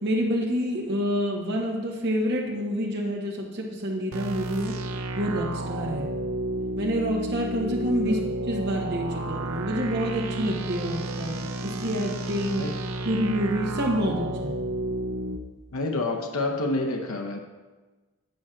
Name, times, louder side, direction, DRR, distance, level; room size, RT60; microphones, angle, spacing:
voice 1, 0.0-4.7 5.2-6.1 6.8-8.2 8.5-12.6 13.0-14.6, equal, 50° right, -1 dB, 1.5 m, -27 dB
sound 1, 4.1-15.4, right 1 dB, 80° right, 0.7 m, -32 dB
voice 2, 15.7-17.4, left 2 dB, 80° left, 3 dB, 0.8 m, -28 dB
9.2 x 4.3 x 6.2 m, 1.3 s
head